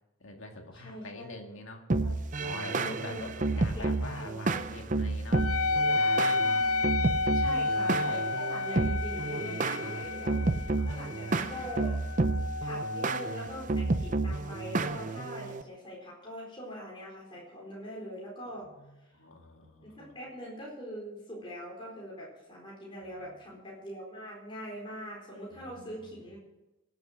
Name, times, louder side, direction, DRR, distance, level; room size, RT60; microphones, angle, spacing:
voice 1, 0.2-1.8 2.4-6.4 7.4-7.6 8.6-8.7 10.8-11.7 18.6-20.1 23.1-23.5 25.5-26.2, left 2 dB, 65° left, 3 dB, 2.1 m, -45 dB
voice 2, 0.7-1.2 2.0-2.1 2.7-3.2 3.5-4.6 6.2-6.9 7.3-11.9 12.6-18.7 19.8-26.4, equal, 25° left, -4 dB, 4.4 m, -43 dB
sound 1, 1.9-15.6, right 3 dB, 35° right, 0.6 m, -31 dB
Wind instrument woodwind instrument, 5.3-14.3, left 3 dB, 85° left, 0.6 m, -31 dB
17.5 x 8.1 x 6.4 m, 0.99 s
head